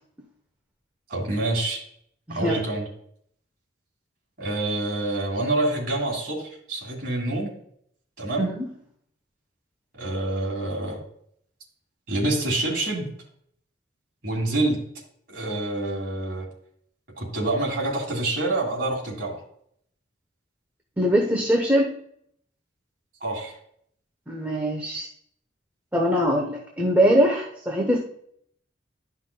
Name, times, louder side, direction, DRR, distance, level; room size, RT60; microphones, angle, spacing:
voice 1, 1.1-1.8 2.3-2.9 4.4-7.6 8.2-8.5 10.0-11.0 12.1-13.1 14.2-14.8 15.3-16.5 17.2-19.4 23.2-23.6, right 2 dB, 50° right, -4 dB, 2.5 m, -27 dB
voice 2, 2.3-2.6 8.4-8.6 21.0-21.9 24.3-25.1 25.9-28.0, equal, 10° right, 0 dB, 0.9 m, -22 dB
12.0 x 5.7 x 2.2 m, 0.67 s
head